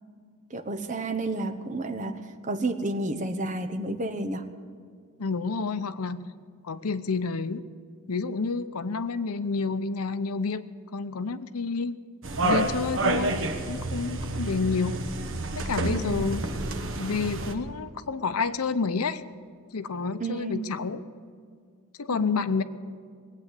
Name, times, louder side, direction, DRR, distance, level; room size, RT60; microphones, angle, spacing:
voice 1, 0.5-4.4 15.8-16.2 20.2-20.6 22.1-22.5, right 2 dB, 35° right, 6 dB, 1.0 m, -31 dB
voice 2, 5.2-6.3 6.6-7.6 8.1-10.6 10.9-11.9 12.4-13.4 13.7-15.1 15.6-16.4 17.0-19.2 19.7-21.0 22.0-22.6, left 4 dB, 85° left, 12 dB, 0.7 m, -29 dB
sound 1, 12.2-17.5, right 2 dB, 60° right, 1.3 m, -29 dB
20.0 x 8.5 x 8.3 m, 2.2 s
head